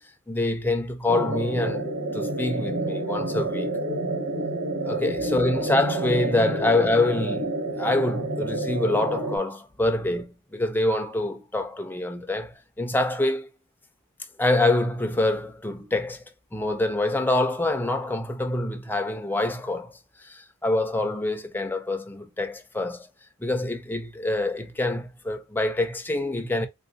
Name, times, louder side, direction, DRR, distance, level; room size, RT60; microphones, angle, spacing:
voice 1, 0.3-3.8 4.8-13.5 14.4-16.2 16.5-23.1 23.4-26.7, left 2 dB, 10° left, 0.6 m, -26 dB
sound 1, 1.1-9.4, right 2 dB, 85° right, 1.6 m, -29 dB
3.9 x 2.7 x 2.5 m
head